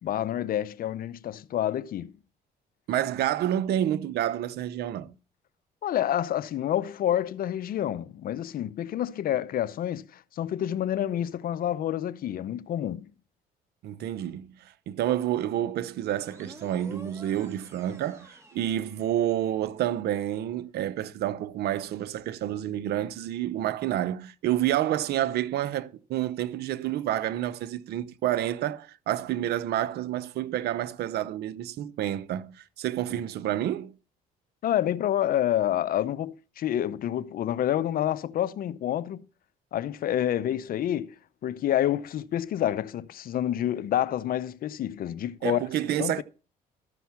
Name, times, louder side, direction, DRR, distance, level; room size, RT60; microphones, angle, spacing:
voice 1, 0.0-2.1 5.8-13.1 34.6-39.2 39.7-41.2 41.4-45.6 46.0-46.2, left 11 dB, 60° left, 0.7 m, -28 dB
voice 2, 2.9-5.1 13.8-33.9 45.4-46.2, right 12 dB, 75° right, 0.8 m, -29 dB
sound 1, 16.2-19.7, right 1 dB, 15° right, 3.3 m, -50 dB
13.5 x 5.8 x 5.7 m
cardioid pair, 80°, 17 cm